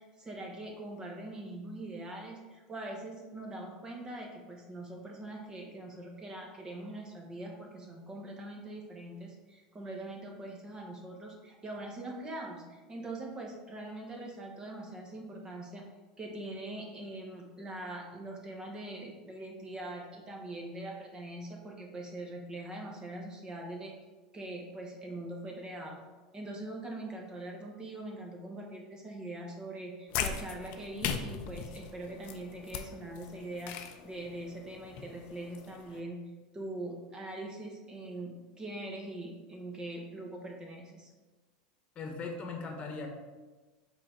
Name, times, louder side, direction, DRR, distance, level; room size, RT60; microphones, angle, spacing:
voice 1, 0.0-15.9 16.2-24.0 24.3-26.0 26.3-33.8 34.0-36.2 36.5-41.1, right 1 dB, 20° right, 0 dB, 1.2 m, -42 dB
sound 1, 30.1-36.0, left 8 dB, 55° left, 0.6 m, -39 dB
voice 2, 41.9-43.1, left 4 dB, 30° left, 3 dB, 1.2 m, -39 dB
6.0 x 3.9 x 4.6 m, 1.3 s
hypercardioid pair, 110°, 4 cm